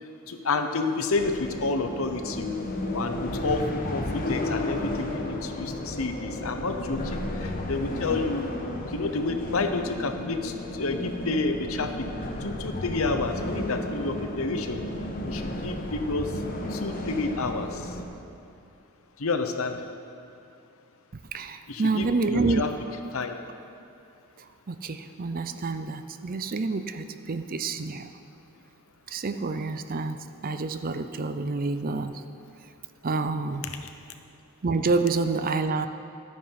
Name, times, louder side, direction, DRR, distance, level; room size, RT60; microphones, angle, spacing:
voice 1, 0.3-2.5 2.9-8.4 8.9-12.1 12.4-14.9 15.2-16.4 16.7-17.8 19.2-19.8 21.7-22.7 23.1-23.4, left 3 dB, 65° left, 7 dB, 0.9 m, -29 dB
sound 1, 1.1-18.0, left 1 dB, 40° left, 1.2 m, -33 dB
voice 2, 21.3-22.7 24.7-28.1 29.1-32.2 33.0-33.6 34.6-35.9, right 3 dB, 40° right, 9 dB, 0.5 m, -28 dB
12.5 x 9.3 x 5.8 m, 2.5 s
head